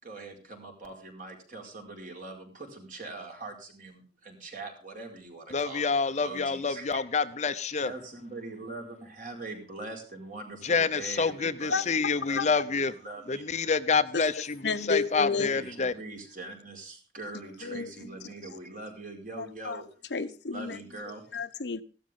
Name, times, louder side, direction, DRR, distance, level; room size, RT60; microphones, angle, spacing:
voice 1, 0.0-7.0 7.8-13.4 15.3-19.9 20.5-21.4, right 2 dB, 50° right, 4.8 m, -42 dB
voice 2, 5.5-7.9 10.6-12.9 13.3-15.9, left 4 dB, 40° left, 0.7 m, -27 dB
voice 3, 14.6-15.5 17.6-17.9 18.5-18.6 19.4-19.8 20.1-20.8 21.3-21.8, left 4 dB, 75° left, 0.9 m, -31 dB
16.0 x 12.5 x 3.7 m
head